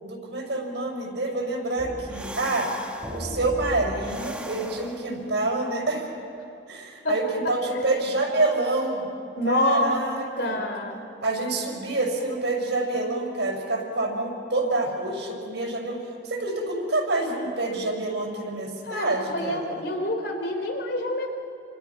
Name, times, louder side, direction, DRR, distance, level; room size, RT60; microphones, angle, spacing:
voice 1, 0.0-2.7 3.1-6.1 6.7-9.1 9.4-10.6 11.2-16.0 16.2-19.8, right 2 dB, 70° right, 0 dB, 6.1 m, -27 dB
sound 1, 1.8-5.3, right 1 dB, 5° right, 1.4 m, -37 dB
voice 2, 7.4-7.9 9.4-10.0 10.4-11.0 18.9-21.3, left 1 dB, 65° left, 4 dB, 3.5 m, -27 dB
29.5 x 26.0 x 6.0 m, 2.8 s
head